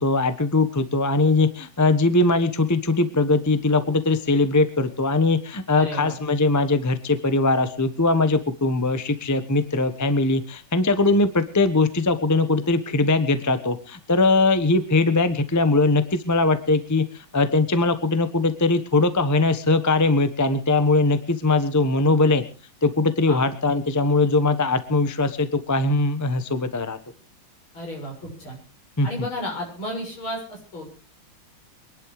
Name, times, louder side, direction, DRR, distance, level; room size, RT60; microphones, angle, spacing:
voice 1, 0.0-22.4 22.8-27.0 29.0-29.1, left 3 dB, 15° left, 11 dB, 0.8 m, -21 dB
voice 2, 5.8-6.1 23.3-23.4 27.7-28.6 29.0-30.9, equal, 70° left, 0 dB, 7.6 m, -32 dB
23.5 x 11.0 x 4.9 m, 0.37 s
omnidirectional pair, 2.3 m